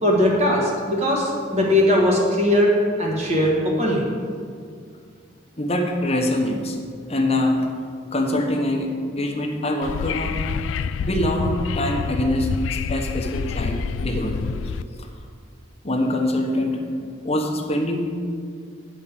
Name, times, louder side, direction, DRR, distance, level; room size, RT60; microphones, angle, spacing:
voice 1, 0.0-2.7 3.0-4.0, left 1 dB, 35° right, -3 dB, 1.6 m, -19 dB
voice 2, 5.6-6.8 7.1-7.7 8.1-10.4 11.0-14.5 15.0-15.1 15.8-18.1, left 1 dB, 30° left, 2 dB, 1.0 m, -24 dB
Wind / Subway metro underground, 9.8-14.8, left 5 dB, 75° left, 0.3 m, -27 dB
8.3 x 5.3 x 7.4 m, 2.2 s
head